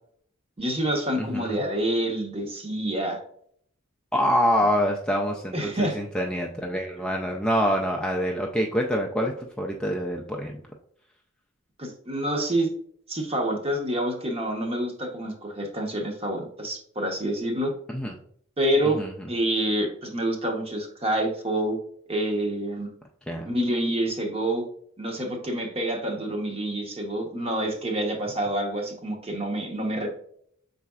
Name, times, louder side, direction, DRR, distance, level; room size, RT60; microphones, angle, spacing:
voice 1, 0.6-3.2 5.5-6.0 11.8-12.7 13.1-17.7 18.6-19.0 19.3-21.8 22.1-22.9 23.5-24.6 25.0-30.1, right 1 dB, 30° right, 2 dB, 0.9 m, -27 dB
voice 2, 1.1-1.6 4.1-10.6 17.9-18.2 19.0-19.1 23.3-23.5, equal, 5° left, 0 dB, 0.3 m, -26 dB
5.6 x 4.1 x 2.3 m, 0.65 s
head